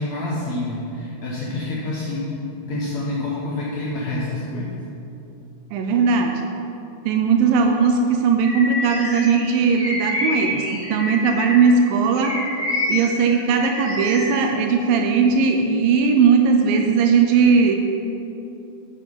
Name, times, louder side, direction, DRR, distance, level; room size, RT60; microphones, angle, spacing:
voice 1, 0.0-2.3 2.7-4.8, left 2 dB, 65° left, -5 dB, 1.8 m, -27 dB
voice 2, 5.7-6.4 7.1-12.4 12.9-17.8, right 5 dB, 80° right, 3 dB, 2.2 m, -18 dB
Bird vocalization bird call bird song, 8.4-11.7 12.1-14.4, left 1 dB, 30° right, 0.7 m, -27 dB
9.5 x 6.5 x 5.1 m, 2.8 s
omnidirectional pair, 4.4 m